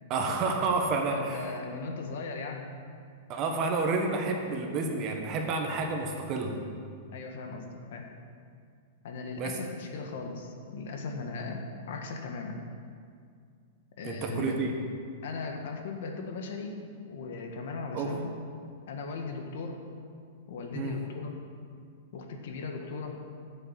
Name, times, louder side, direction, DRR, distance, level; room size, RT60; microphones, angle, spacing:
voice 1, 0.1-1.4 3.3-6.6 9.4-9.5 14.0-14.7 17.9-18.1 20.7-21.0, right 3 dB, 30° right, 2 dB, 1.4 m, -30 dB
voice 2, 1.1-2.7 7.1-8.1 9.0-11.6 11.9-12.6 14.0-14.7 15.2-16.8 17.1-18.3 18.9-19.9 20.5-21.4 22.1-23.2, left 4 dB, 65° left, 3 dB, 1.6 m, -38 dB
11.0 x 7.5 x 7.6 m, 2.2 s
supercardioid pair, 165°, 0 cm